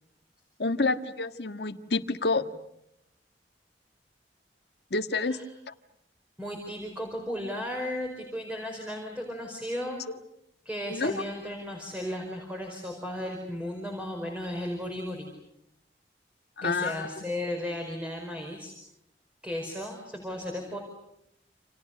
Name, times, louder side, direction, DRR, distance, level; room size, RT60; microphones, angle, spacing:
voice 1, 0.6-2.4 4.9-5.4 5.7-5.8 10.9-11.1 16.6-17.1, left 3 dB, 70° left, 9 dB, 1.6 m, -28 dB
voice 2, 6.4-10.0 10.6-15.3 16.6-18.7 19.4-20.8, left 1 dB, 5° right, 2 dB, 4.9 m, -35 dB
29.5 x 28.5 x 6.7 m, 0.80 s
head